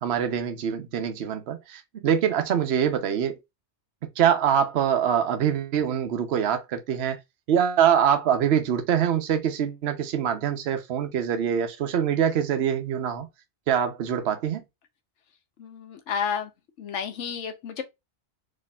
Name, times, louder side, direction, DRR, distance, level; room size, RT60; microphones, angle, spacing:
voice 1, 0.0-3.4 4.2-7.2 7.5-13.3 13.7-14.6, right 8 dB, 65° right, 0.9 m, -24 dB
voice 2, 15.6-16.5 16.8-17.8, left 7 dB, 85° left, 1.1 m, -31 dB
4.1 x 3.0 x 2.3 m
omnidirectional pair, 1.2 m